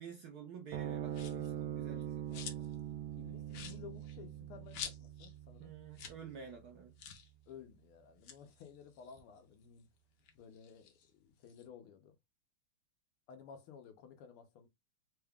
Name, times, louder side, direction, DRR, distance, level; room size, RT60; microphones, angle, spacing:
voice 1, 0.0-2.7 5.6-6.9, right 6 dB, 70° right, 0.9 m, -50 dB
sound 1, 0.7-7.4, right 11 dB, 85° right, 1.5 m, -43 dB
sound 2, 1.1-1.5 2.0-2.8 3.1-3.2 3.5-5.3 5.6-5.7 5.9-6.2 6.5-6.6 7.0-7.3 8.1-9.8 10.2-11.7, left 7 dB, 65° left, 1.2 m, -49 dB
voice 2, 3.2-5.7 7.5-9.9 10.4-12.1 13.3-14.7, left 7 dB, 90° left, 1.8 m, -55 dB
4.3 x 2.3 x 3.5 m
omnidirectional pair, 2.3 m